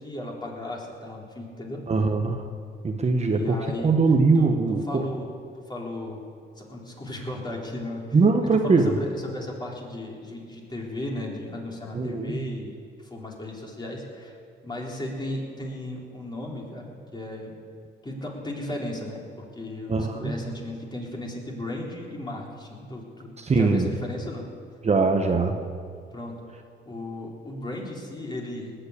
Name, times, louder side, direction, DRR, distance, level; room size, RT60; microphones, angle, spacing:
voice 1, 0.0-1.8 3.3-3.9 4.3-5.3 5.7-6.2 6.6-8.0 8.6-12.7 13.0-14.3 14.6-17.5 18.0-24.4 26.1-26.3 26.9-28.7, left 1 dB, 20° left, -2 dB, 3.9 m, -35 dB
voice 2, 1.9-2.4 2.8-3.6 3.8-5.0 8.1-8.9 11.9-12.4 19.9-20.3 23.4-23.8 24.8-25.7, right 4 dB, 35° right, 4 dB, 1.2 m, -21 dB
19.0 x 7.8 x 8.5 m, 2.2 s
cardioid pair, 90°, 20 cm